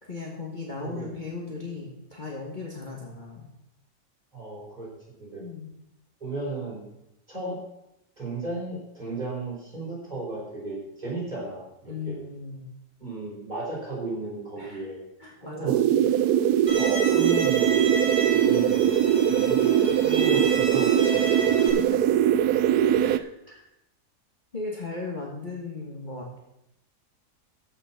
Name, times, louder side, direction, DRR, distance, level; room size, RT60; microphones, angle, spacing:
voice 1, 0.0-3.5 5.4-5.7 11.8-12.6 14.6-14.8 15.2-16.0 21.7-22.1 23.0-23.6 24.5-26.4, left 3 dB, 30° left, -2 dB, 1.7 m, -37 dB
voice 2, 4.3-4.9 5.2-5.4 6.2-6.9 7.3-7.6 8.2-12.2 13.0-15.0 15.4-15.8 16.8-17.8 18.3-21.6, right 3 dB, 25° right, -6 dB, 5.0 m, -34 dB
sound 1, 15.7-23.2, right 10 dB, 75° right, 1.1 m, -21 dB
Bowed string instrument, 16.7-21.7, right 2 dB, 40° right, 3.2 m, -32 dB
14.0 x 6.0 x 5.7 m, 0.85 s
omnidirectional pair, 1.8 m